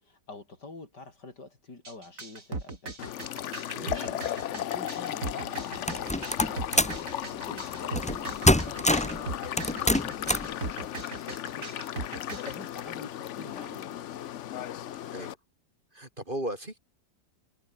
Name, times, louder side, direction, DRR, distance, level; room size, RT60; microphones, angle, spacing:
voice 1, 0.0-3.0 3.7-7.0 7.3-14.1, left 3 dB, 60° left, 5.2 m, -47 dB
sound 1, 1.8-12.5, right 3 dB, 45° right, 3.9 m, -38 dB
sound 2, 3.0-15.3, left 11 dB, 80° left, 0.6 m, -36 dB
voice 2, 3.8-4.1 15.0-15.4 15.9-16.8, right 1 dB, 25° right, 4.4 m, -36 dB
sound 3, 5.9-7.0 7.9-8.2 8.4-9.2 9.6-10.5, left 1 dB, 5° left, 0.6 m, -24 dB
omnidirectional pair, 2.1 m